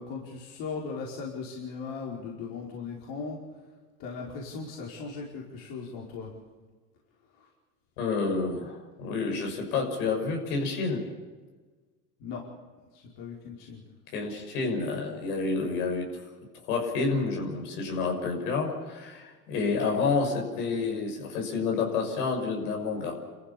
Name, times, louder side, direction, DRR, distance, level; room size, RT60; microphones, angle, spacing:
voice 1, 0.0-3.4 4.0-6.3 12.2-12.4 12.9-13.8, left 4 dB, 55° left, -2 dB, 5.2 m, -38 dB
voice 2, 8.0-11.1 14.1-16.1 16.6-23.1, left 4 dB, 70° left, 2 dB, 6.4 m, -29 dB
29.5 x 14.5 x 7.1 m, 1.3 s
hypercardioid pair, 90°, 46 cm